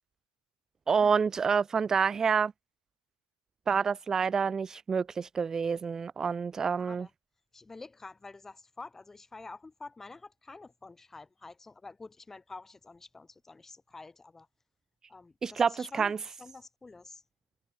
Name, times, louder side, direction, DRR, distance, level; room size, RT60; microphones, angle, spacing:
voice 1, 0.9-2.5 3.7-7.1 15.4-16.2, right 6 dB, 15° right, 0.3 m, -28 dB
voice 2, 6.8-7.1 7.5-14.5 15.1-17.2, left 3 dB, 10° left, 2.1 m, -48 dB
hypercardioid pair, 130°, 4 cm